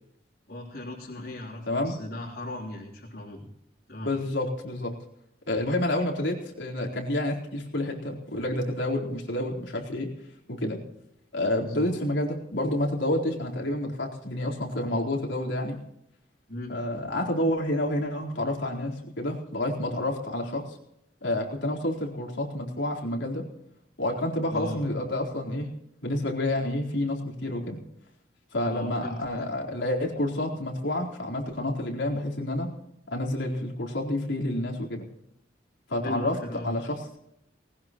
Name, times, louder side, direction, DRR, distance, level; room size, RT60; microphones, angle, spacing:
voice 1, 0.5-3.5 3.9-4.1 11.6-11.9 16.5-16.8 24.5-24.8 28.7-29.5 36.0-36.8, left 1 dB, 60° left, -5 dB, 3.4 m, -37 dB
voice 2, 1.7-2.0 4.0-4.9 5.5-10.1 10.5-10.8 11.3-15.8 16.7-20.8 21.2-23.5 24.0-25.7 26.0-27.8 28.5-32.7 33.1-35.0 35.9-36.4 36.6-37.2, left 1 dB, 85° left, -2 dB, 4.1 m, -29 dB
20.0 x 19.5 x 3.0 m, 0.79 s
head